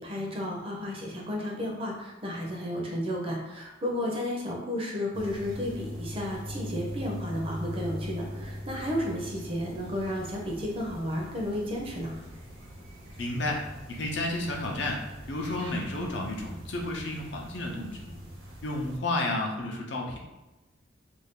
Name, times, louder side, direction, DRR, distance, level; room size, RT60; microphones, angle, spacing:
voice 1, 0.0-12.1, left 1 dB, 30° right, -2 dB, 0.6 m, -32 dB
sound 1, 5.1-19.0, equal, 80° right, 1.1 m, -41 dB
voice 2, 13.2-15.0 15.3-18.2 18.6-20.2, left 2 dB, 60° left, 0 dB, 0.6 m, -32 dB
2.6 x 2.3 x 3.6 m, 1.1 s
head